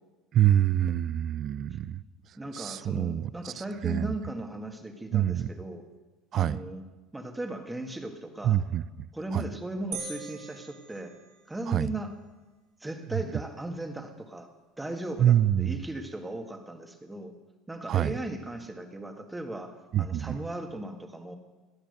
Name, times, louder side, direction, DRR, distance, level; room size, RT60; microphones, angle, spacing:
voice 1, 0.3-2.0 2.5-4.1 5.1-5.5 6.3-6.6 8.4-9.5 11.7-11.9 13.1-13.2 15.2-15.8 17.9-18.2 19.9-20.4, right 11 dB, 40° right, 18 dB, 0.5 m, -26 dB
voice 2, 2.4-5.8 6.3-6.8 7.1-8.6 9.1-11.1 11.5-12.1 12.8-14.5 14.8-17.3 17.7-21.4, right 1 dB, 10° right, 5 dB, 1.7 m, -37 dB
sound 1, 9.9-11.7, right 5 dB, 60° right, 2.6 m, -41 dB
17.5 x 11.5 x 6.6 m, 1.2 s
cardioid pair, 135°, 0 cm